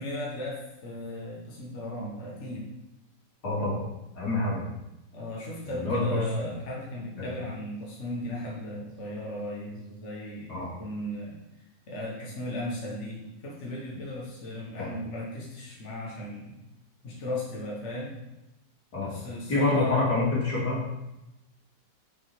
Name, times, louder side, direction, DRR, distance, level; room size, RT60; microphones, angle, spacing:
voice 1, 0.0-2.7 5.1-11.4 11.9-16.6 17.0-18.2 19.0-20.0, left 1 dB, 45° left, -4 dB, 1.6 m, -36 dB
voice 2, 3.4-3.8 4.1-4.6 5.6-6.5 7.1-7.3 10.5-10.7 14.8-14.9 18.9-19.1 19.5-21.0, left 2 dB, 70° left, -6 dB, 3.0 m, -27 dB
5.8 x 5.3 x 4.9 m, 0.93 s
omnidirectional pair, 1.9 m